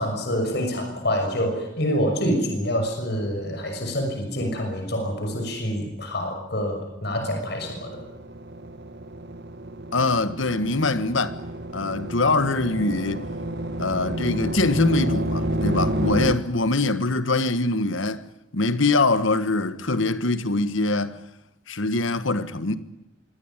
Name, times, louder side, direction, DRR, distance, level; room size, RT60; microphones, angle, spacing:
voice 1, 0.0-8.0, equal, 55° left, 6.2 m, -26 dB
sound 1, 7.6-16.3, right 1 dB, 55° right, 1.8 m, -30 dB
voice 2, 9.9-11.4 11.7-13.3 13.8-18.2 18.5-21.2 21.7-22.8, left 3 dB, 80° left, 1.5 m, -23 dB
24.5 x 17.5 x 8.9 m
head